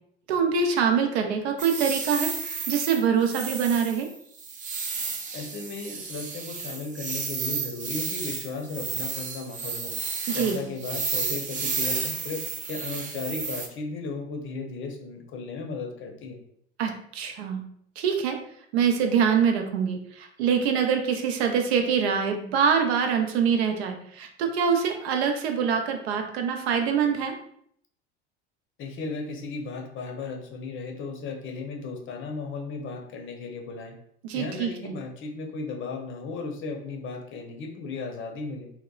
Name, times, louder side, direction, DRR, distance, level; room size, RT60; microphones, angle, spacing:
voice 1, 0.3-2.3 2.7-4.1 10.3-10.6 16.8-17.6 18.0-18.4 18.7-27.3 34.2-34.9, right 6 dB, 75° right, 5 dB, 0.5 m, -24 dB
sound 1, 1.6-13.7, right 5 dB, 25° right, 0.4 m, -32 dB
voice 2, 5.3-9.9 10.3-12.4 12.7-16.4 28.8-34.0 34.3-38.7, left 4 dB, 40° left, 2 dB, 0.6 m, -35 dB
2.7 x 2.1 x 2.3 m, 0.67 s
hypercardioid pair, 80°, 32 cm